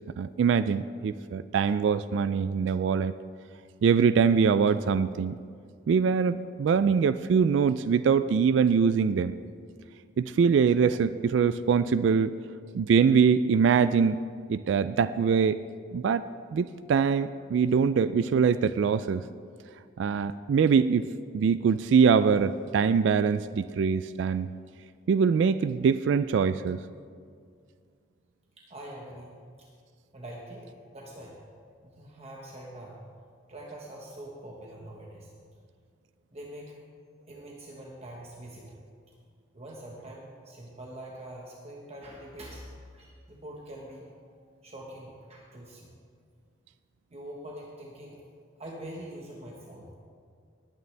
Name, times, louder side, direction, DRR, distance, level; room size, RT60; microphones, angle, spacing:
voice 1, 0.2-3.1 3.8-5.3 5.9-9.3 10.2-12.3 12.7-14.2 14.5-15.6 15.9-19.2 20.0-21.1 21.3-24.5 25.1-26.8, right 6 dB, 70° right, 14 dB, 0.3 m, -23 dB
voice 2, 28.6-29.3 29.6-29.7 30.1-31.4 31.8-33.0 33.5-35.3 36.3-36.8 37.3-38.8 39.5-44.1 44.6-46.0 47.1-48.2 48.6-49.9, right 1 dB, 35° right, -2 dB, 1.2 m, -44 dB
19.0 x 9.5 x 3.3 m, 2.2 s
head